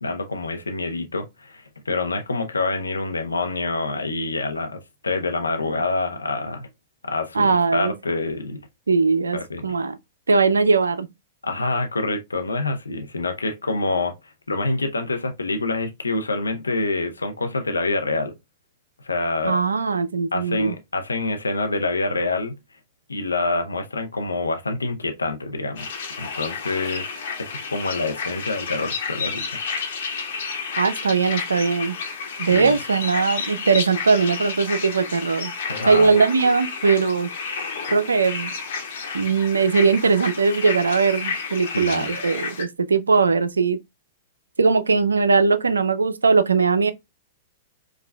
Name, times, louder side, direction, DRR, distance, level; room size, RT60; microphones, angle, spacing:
voice 1, 0.0-4.8 5.0-6.7 7.0-8.6 9.3-9.6 11.4-14.2 14.5-18.3 19.0-19.6 20.3-22.6 23.1-25.9 26.2-29.6 32.5-32.8 35.7-36.1 41.7-42.1, left 2 dB, 90° left, 0.7 m, -26 dB
voice 2, 7.3-7.9 8.9-10.0 10.3-11.1 19.4-20.7 30.8-31.9 32.4-35.5 35.9-37.3 37.9-38.5 39.1-43.8 44.6-46.9, right 4 dB, 85° right, 0.4 m, -20 dB
sound 1, 25.8-42.6, left 5 dB, 65° left, 1.1 m, -31 dB
4.8 x 2.4 x 2.2 m
hypercardioid pair, 110°, 0 cm